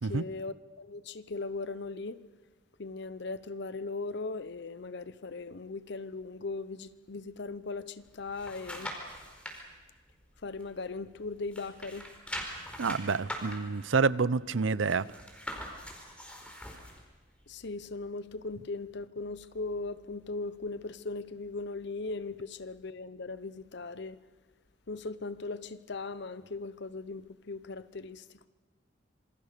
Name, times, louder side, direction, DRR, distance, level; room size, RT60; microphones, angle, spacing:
voice 1, 0.1-2.2 2.8-8.9 10.4-12.1 17.5-24.2 24.9-28.2, left 3 dB, 60° left, 0.8 m, -38 dB
sound 1, 8.0-9.6 10.1-11.2 11.4-17.0 17.5-17.6, equal, 5° left, 4.6 m, -42 dB
voice 2, 12.8-15.1, right 4 dB, 80° right, 0.7 m, -28 dB
27.0 x 25.0 x 6.7 m
head